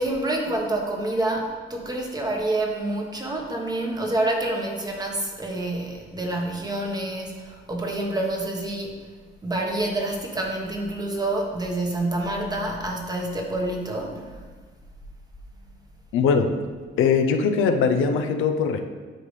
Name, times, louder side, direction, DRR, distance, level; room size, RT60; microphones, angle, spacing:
voice 1, 0.0-9.0 9.4-14.4, right 1 dB, 20° right, 1 dB, 1.2 m, -27 dB
voice 2, 16.1-16.5 17.0-18.8, left 5 dB, 85° left, 6 dB, 0.6 m, -21 dB
9.9 x 3.8 x 3.3 m, 1.4 s
cardioid pair, 90°, 20 cm